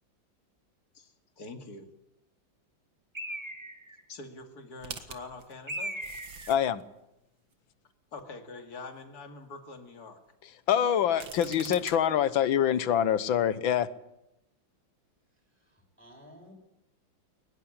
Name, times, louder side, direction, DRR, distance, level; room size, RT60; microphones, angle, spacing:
voice 1, 0.9-1.9 4.1-6.0 8.1-10.2, left 3 dB, 55° left, 5 dB, 2.8 m, -45 dB
Bird, 3.2-4.0 5.7-6.6, right 1 dB, 15° right, 2.4 m, -38 dB
sound 1, 4.8-6.8 7.5-7.6 11.0-12.0, right 6 dB, 85° right, 2.5 m, -44 dB
voice 2, 6.5-6.8 10.7-13.9, left 9 dB, 85° left, 15 dB, 1.9 m, -25 dB
voice 3, 15.6-16.5, equal, 5° left, 0 dB, 5.5 m, -54 dB
22.5 x 20.5 x 8.8 m, 0.88 s
omnidirectional pair, 2.1 m